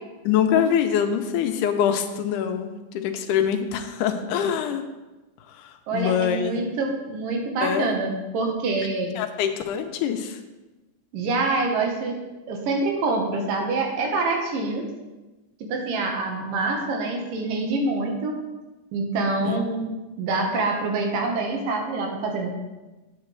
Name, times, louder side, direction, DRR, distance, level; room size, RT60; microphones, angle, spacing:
voice 1, 0.2-4.8 5.5-6.8 7.6-7.9 9.2-10.4 19.4-19.6, left 8 dB, 80° left, 6 dB, 2.1 m, -24 dB
voice 2, 5.9-9.2 11.1-12.2 12.5-14.9 15.7-18.4 18.9-19.9 20.2-22.5, right 3 dB, 85° right, 2 dB, 2.9 m, -26 dB
9.4 x 8.3 x 3.2 m, 1.1 s
omnidirectional pair, 3.8 m